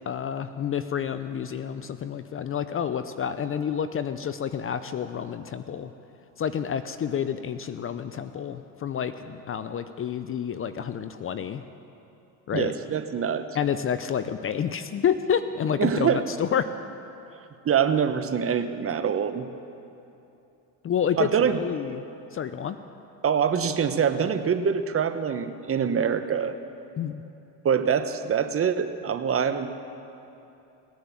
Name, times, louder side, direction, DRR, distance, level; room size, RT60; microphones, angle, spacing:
voice 1, 0.1-5.9 6.4-11.6 12.5-12.7 13.5-16.7 20.8-22.0 22.3-22.8 27.0-27.2, left 8 dB, 30° left, 11 dB, 0.6 m, -29 dB
voice 2, 12.5-13.4 15.8-16.2 17.6-19.5 21.2-21.6 23.2-26.5 27.6-29.7, right 7 dB, 30° right, 9 dB, 1.0 m, -24 dB
18.5 x 10.5 x 7.2 m, 2.8 s
supercardioid pair, 95°, 43 cm